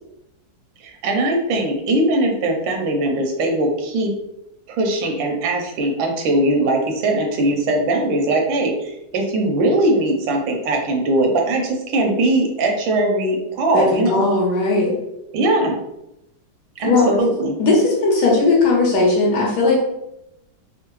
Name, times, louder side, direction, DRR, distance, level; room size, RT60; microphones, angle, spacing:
voice 1, 0.8-4.1 4.7-14.2 15.3-15.8 16.8-17.6, right 2 dB, 90° right, 2 dB, 1.4 m, -20 dB
voice 2, 13.7-14.9 16.8-17.1 17.6-19.9, left 3 dB, 65° left, -3 dB, 1.2 m, -17 dB
3.6 x 2.0 x 2.9 m, 0.85 s
omnidirectional pair, 2.1 m